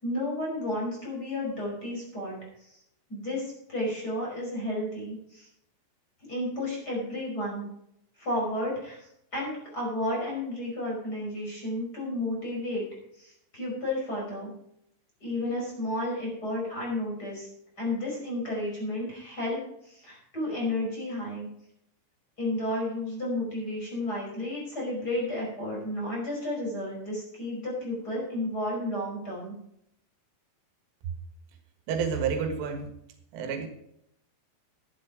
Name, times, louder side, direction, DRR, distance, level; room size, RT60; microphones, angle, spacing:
voice 1, 0.0-2.8 3.1-5.5 6.3-7.7 8.2-9.0 9.3-12.8 13.2-14.5 15.2-17.5 17.8-21.5 22.4-29.6, left 1 dB, 20° left, -3 dB, 5.4 m, -32 dB
voice 2, 31.9-32.9 33.3-33.7, right 6 dB, 85° right, 6 dB, 4.1 m, -29 dB
12.0 x 10.5 x 5.0 m, 0.74 s
omnidirectional pair, 5.6 m